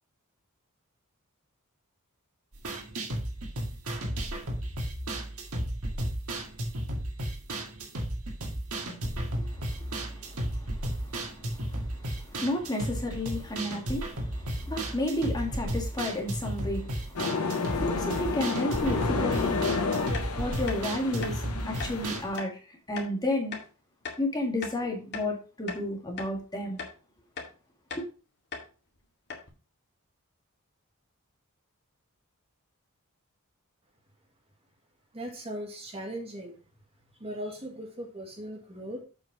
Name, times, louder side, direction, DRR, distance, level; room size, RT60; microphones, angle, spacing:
sound 1, 2.5-22.4, right 1 dB, 75° right, 2.0 m, -34 dB
voice 1, 9.3-19.7 20.4-23.6 24.2-26.8 28.0-28.1, left 1 dB, 20° left, 1.9 m, -33 dB
sound 2, 17.2-22.2, left 4 dB, 85° left, 1.4 m, -31 dB
sound 3, 20.1-20.3 20.7-20.8 21.2-21.4 21.8-21.9 22.4-22.5 23.0-23.1 23.5-23.7 24.0-24.2 24.6-25.3 25.7-25.8 26.2-26.3 26.8-27.0 27.4-27.5 27.9-28.1 28.5-28.7 29.0-29.1 29.3-29.5, left 5 dB, 50° left, 2.3 m, -38 dB
voice 2, 35.1-36.6 37.2-39.0, right 1 dB, 25° right, 1.9 m, -38 dB
7.7 x 5.7 x 4.7 m
head